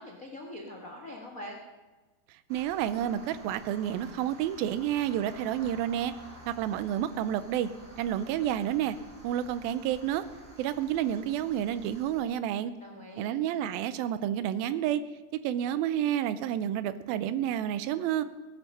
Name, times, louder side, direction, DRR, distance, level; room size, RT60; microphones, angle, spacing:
voice 1, 0.0-1.6 12.8-13.3, left 1 dB, 75° left, -1 dB, 0.7 m, -43 dB
sound 1, 2.5-12.2, right 1 dB, 15° right, 2.1 m, -51 dB
voice 2, 2.5-6.1 6.5-7.7 8.0-9.0 9.2-10.3 10.6-12.7 13.2-15.0 15.3-18.2, right 11 dB, 80° right, 13 dB, 2.5 m, -30 dB
19.0 x 10.5 x 5.5 m, 1.2 s
omnidirectional pair, 4.3 m